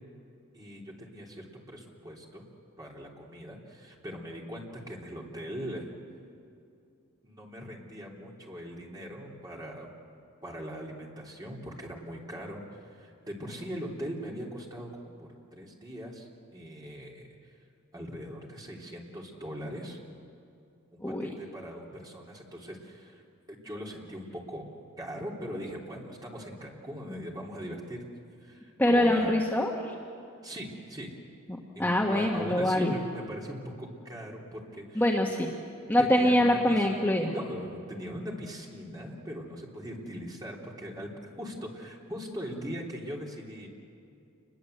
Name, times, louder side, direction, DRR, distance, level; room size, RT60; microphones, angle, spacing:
voice 1, 0.5-2.4 2.8-6.0 7.2-9.9 10.4-17.3 17.9-20.0 20.9-23.2 23.5-24.6 25.0-28.0 28.4-29.3 30.4-31.1 31.7-35.0 36.0-41.1 41.4-43.7, equal, 20° right, -2 dB, 3.4 m, -40 dB
voice 2, 21.0-21.3 28.8-29.9 31.8-32.9 34.9-35.5 35.9-37.3, left 1 dB, 10° left, -1 dB, 1.5 m, -24 dB
28.5 x 21.5 x 8.0 m, 2.6 s
head